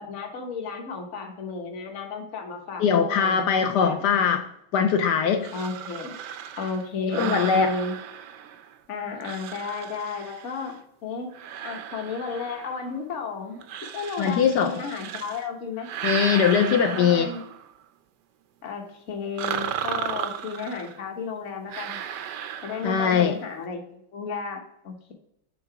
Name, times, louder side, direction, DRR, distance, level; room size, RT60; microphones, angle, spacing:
voice 1, 0.0-4.3 5.5-6.2 6.6-7.9 8.9-11.3 11.6-13.6 13.9-15.9 17.0-17.4 18.6-22.0 22.6-25.1, left 4 dB, 45° left, 3 dB, 1.1 m, -33 dB
voice 2, 2.8-4.4 4.7-5.5 7.2-7.7 14.2-14.7 16.0-17.3 22.8-23.4, left 7 dB, 75° left, 6 dB, 0.9 m, -21 dB
sound 1, 5.4-8.8 9.2-10.8 11.3-13.0 13.6-15.5 15.8-17.7 19.4-21.0 21.7-23.2, right 9 dB, 75° right, 0.9 m, -35 dB
6.8 x 3.8 x 4.6 m, 0.76 s
omnidirectional pair, 2.4 m